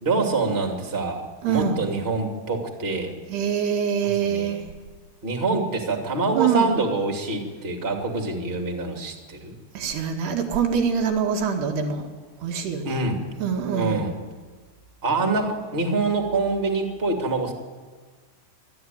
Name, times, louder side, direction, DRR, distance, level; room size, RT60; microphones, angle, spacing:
voice 1, 0.0-3.1 4.0-4.6 5.2-9.5 12.8-13.2 13.7-14.2 15.0-17.5, right 3 dB, 30° right, 3 dB, 1.1 m, -25 dB
voice 2, 1.4-1.8 3.3-4.6 6.3-6.7 9.8-12.1 12.4-13.0 13.4-14.0, right 7 dB, 65° right, 2 dB, 3.5 m, -24 dB
25.0 x 11.5 x 9.4 m, 1.5 s
omnidirectional pair, 5.6 m